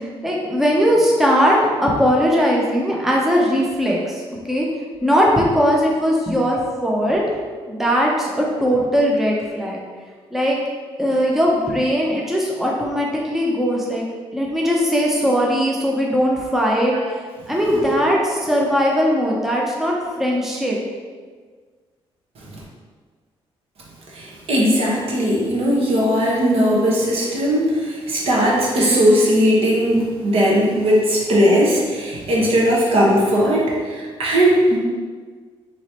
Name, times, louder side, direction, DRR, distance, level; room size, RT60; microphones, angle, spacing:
voice 1, 0.0-4.2 4.5-4.7 5.0-7.2 7.7-9.8 10.3-10.6 11.0-14.1 14.3-17.2 17.5-20.8, equal, 5° right, -3 dB, 0.6 m, -19 dB
voice 2, 24.1-34.8, equal, 70° right, -4 dB, 1.1 m, -18 dB
4.6 x 3.0 x 2.9 m, 1.5 s
cardioid pair, 110°, 10 cm